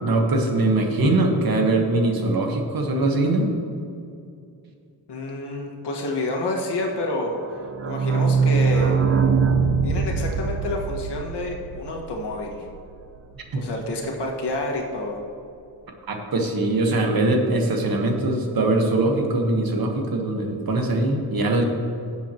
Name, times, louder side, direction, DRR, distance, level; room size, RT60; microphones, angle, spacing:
voice 1, 0.0-3.5 13.5-13.6 16.1-21.6, right 2 dB, 60° right, 3 dB, 1.4 m, -22 dB
voice 2, 5.1-7.4 7.8-9.0 9.8-12.6 13.5-15.2, left 2 dB, 85° left, -1 dB, 1.7 m, -28 dB
sound 1, 7.4-13.0 13.3-13.4 13.6-13.7 14.0-14.1, right 5 dB, 35° right, 0.6 m, -22 dB
17.0 x 7.3 x 3.0 m, 2.5 s
wide cardioid pair, 160°, 40 cm